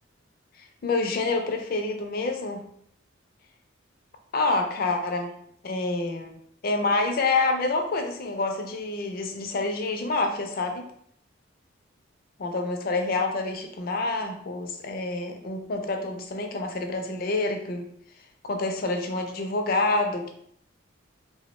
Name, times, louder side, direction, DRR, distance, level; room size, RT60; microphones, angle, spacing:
voice 1, 0.8-2.6 4.3-5.3 5.6-6.3 6.6-10.8 12.4-17.9 18.4-20.3, left 3 dB, 50° left, 4 dB, 0.4 m, -27 dB
2.7 x 2.0 x 3.0 m, 0.68 s
head